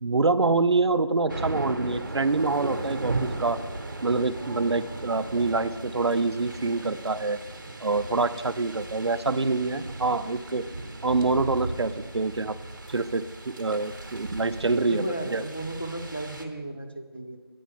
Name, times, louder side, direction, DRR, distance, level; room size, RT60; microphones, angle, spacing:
voice 1, 0.0-3.6 4.0-7.4 7.8-10.7 11.0-12.6 12.9-13.2 13.6-15.4, right 3 dB, 85° right, 13 dB, 0.6 m, -26 dB
sound 1, 1.3-16.4, right 2 dB, 45° right, 0.9 m, -36 dB
voice 2, 14.8-17.4, right 1 dB, 25° left, 4 dB, 0.4 m, -35 dB
9.3 x 5.2 x 7.2 m, 1.3 s
figure-of-eight pair, 180°, 14 cm